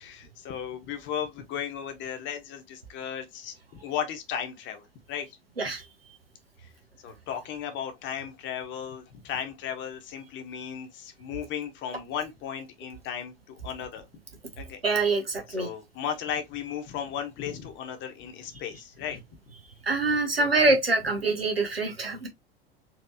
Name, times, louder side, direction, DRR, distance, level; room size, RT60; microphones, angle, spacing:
voice 1, 0.0-3.5 3.8-5.4 6.6-6.7 7.0-14.0 14.6-14.8 15.5-19.2 20.4-20.7, left 8 dB, 40° left, 1.1 m, -35 dB
voice 2, 14.8-15.7 19.9-22.3, right 3 dB, 85° right, 1.2 m, -25 dB
4.3 x 3.1 x 2.6 m
figure-of-eight pair, 75°, 29 cm